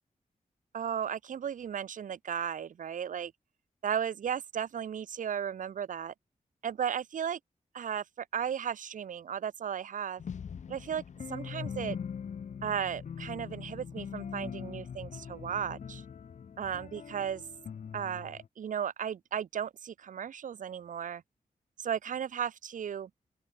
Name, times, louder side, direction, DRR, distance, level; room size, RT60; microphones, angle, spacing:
voice 1, 0.7-3.3 3.8-6.1 6.6-7.4 7.7-10.2 10.7-11.0 11.3-12.0 12.6-16.0 16.6-17.4 17.9-21.2 21.8-23.1, right 8 dB, 65° right, 0.6 m, -35 dB
sound 1, 10.2-18.5, left 7 dB, 55° left, 0.7 m, -42 dB
open air
wide cardioid pair, 135°, 14 cm